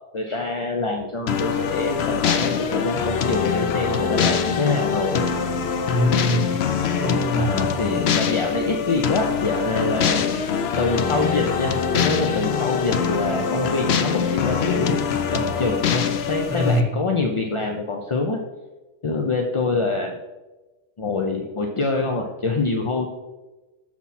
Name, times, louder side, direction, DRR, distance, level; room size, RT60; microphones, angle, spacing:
voice 1, 0.1-5.2 7.4-10.5 10.8-18.4 19.0-20.1 21.0-23.1, left 3 dB, 40° left, 2 dB, 0.5 m, -25 dB
sound 1, 1.3-16.8, left 6 dB, 65° left, 0.8 m, -24 dB
voice 2, 5.8-6.5 7.0-7.5 16.5-16.9, left 1 dB, 5° left, -4 dB, 2.0 m, -22 dB
7.0 x 6.0 x 4.2 m, 1.1 s
omnidirectional pair, 1.2 m